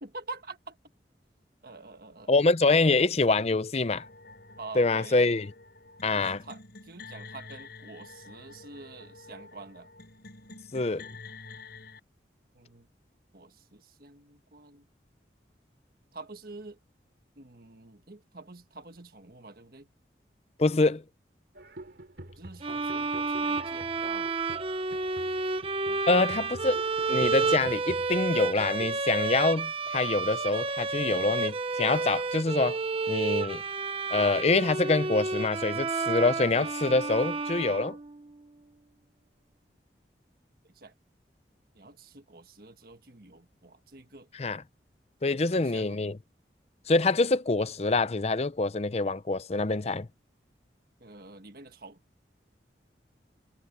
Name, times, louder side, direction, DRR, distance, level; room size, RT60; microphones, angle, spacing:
voice 1, 0.0-0.8 1.6-2.5 4.6-5.2 6.1-9.9 12.5-12.9 13.3-14.9 16.1-16.8 17.4-19.9 22.4-24.4 25.9-26.0 26.4-26.6 40.6-40.9 41.8-44.3 45.3-46.0 51.0-52.0, right 3 dB, 55° right, 1.7 m, -47 dB
voice 2, 2.3-4.0 4.8-5.5 6.0-6.4 10.7-11.1 20.6-21.0 26.1-26.8 27.1-32.8 33.1-33.6 34.1-38.0 44.4-44.6 45.2-46.2 46.9-50.1, left 3 dB, 35° left, 0.6 m, -25 dB
sound 1, 4.0-12.0, left 3 dB, 65° left, 4.4 m, -48 dB
sound 2, 21.5-29.0, right 1 dB, 75° right, 2.8 m, -46 dB
sound 3, 22.6-38.3, right 4 dB, 35° right, 0.9 m, -30 dB
head